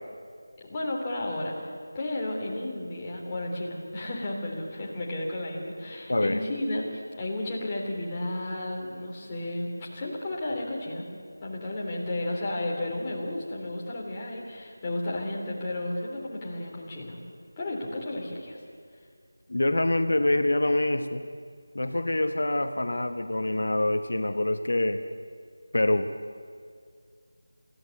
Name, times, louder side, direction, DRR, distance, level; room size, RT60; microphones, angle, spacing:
voice 1, 0.6-11.1 11.4-17.2 17.6-18.6, left 1 dB, 20° left, -4 dB, 3.3 m, -33 dB
voice 2, 6.1-6.4 19.5-21.2 21.7-25.0 25.7-26.1, left 1 dB, 75° left, 8 dB, 1.2 m, -25 dB
21.5 x 14.5 x 9.7 m, 2.2 s
figure-of-eight pair, 170°, 0 cm